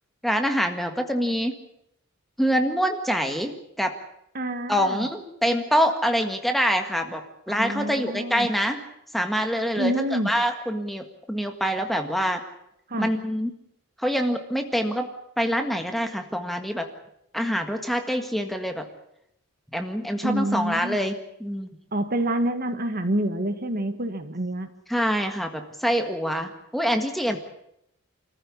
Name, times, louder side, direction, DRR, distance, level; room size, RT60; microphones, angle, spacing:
voice 1, 0.2-1.5 2.4-4.0 4.7-7.2 7.5-8.8 9.1-12.4 13.0-13.5 14.0-15.1 15.4-16.9 17.3-18.8 19.7-21.7 24.9-27.4, equal, ahead, 5 dB, 1.7 m, -25 dB
voice 2, 4.4-5.1 7.5-8.5 9.8-10.3 12.9-13.1 20.2-21.0 21.9-24.7, right 1 dB, 45° right, 8 dB, 1.8 m, -27 dB
26.5 x 14.5 x 8.5 m, 0.79 s
head